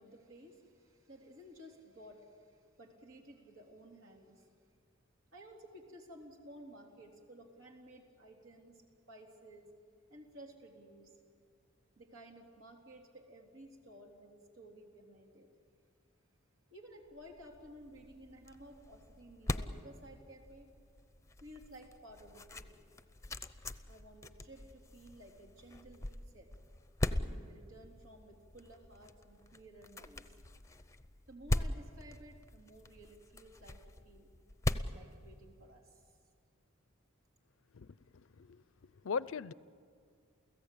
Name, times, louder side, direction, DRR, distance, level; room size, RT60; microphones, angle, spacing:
voice 1, 0.0-4.5 5.3-9.7 10.1-11.1 12.0-15.5 16.7-20.7 21.4-22.8 23.8-26.5 27.1-30.3 31.3-34.3 34.7-36.1, right 1 dB, 75° right, 1 dB, 3.6 m, -55 dB
sound 1, 17.2-35.9, left 1 dB, 15° left, 0.7 m, -41 dB
voice 2, 37.7-39.5, left 5 dB, 70° left, 18 dB, 0.5 m, -40 dB
29.5 x 16.5 x 8.5 m, 2.1 s
head